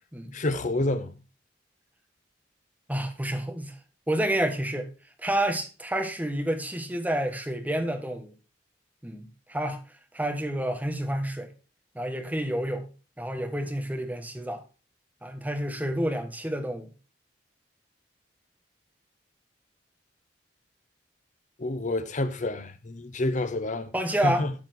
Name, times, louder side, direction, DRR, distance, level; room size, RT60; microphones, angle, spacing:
voice 1, 0.3-1.2 21.6-23.9 24.2-24.5, left 2 dB, 45° left, 0.8 m, -28 dB
voice 2, 2.9-3.7 4.1-4.9 5.2-8.3 9.0-9.8 10.1-11.5 11.9-12.9 13.2-14.6 15.2-16.9 23.9-24.5, right 1 dB, 10° right, 1.3 m, -29 dB
12.0 x 4.4 x 4.2 m
head